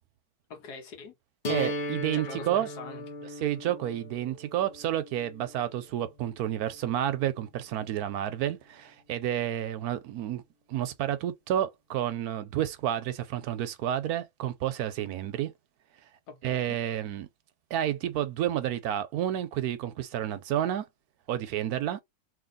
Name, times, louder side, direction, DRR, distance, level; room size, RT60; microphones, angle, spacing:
voice 1, 0.5-1.1 2.1-3.4 16.3-16.8, left 4 dB, 80° left, 1.5 m, -44 dB
sound 1, 1.4-7.4, equal, 35° left, 1.0 m, -38 dB
voice 2, 1.5-2.7 3.4-10.4 10.7-15.5 16.4-17.3 17.7-20.9 21.3-22.0, right 11 dB, 75° right, 1.1 m, -30 dB
2.8 x 2.8 x 3.9 m
omnidirectional pair, 1.7 m